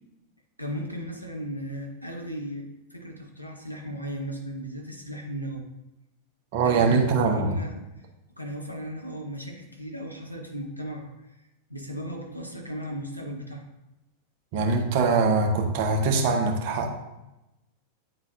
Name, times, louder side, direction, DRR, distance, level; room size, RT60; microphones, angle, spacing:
voice 1, 0.6-5.7 6.6-7.8 8.4-11.1 11.7-13.7, equal, 90° left, 1 dB, 1.0 m, -36 dB
voice 2, 6.5-7.5 14.5-16.9, right 4 dB, 50° right, 2 dB, 1.0 m, -23 dB
9.5 x 3.9 x 2.6 m, 0.97 s
figure-of-eight pair, 90°, 0 cm